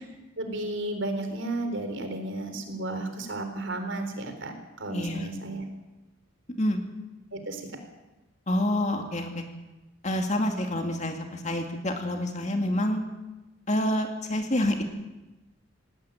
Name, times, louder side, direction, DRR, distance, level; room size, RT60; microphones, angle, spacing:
voice 1, 0.4-5.6 7.3-7.6, right 2 dB, 65° right, 7 dB, 3.9 m, -33 dB
voice 2, 4.9-5.3 6.6-6.8 8.5-9.4 10.0-13.0 13.7-14.8, left 1 dB, 35° left, 4 dB, 2.3 m, -27 dB
18.5 x 18.0 x 9.2 m, 1.1 s
head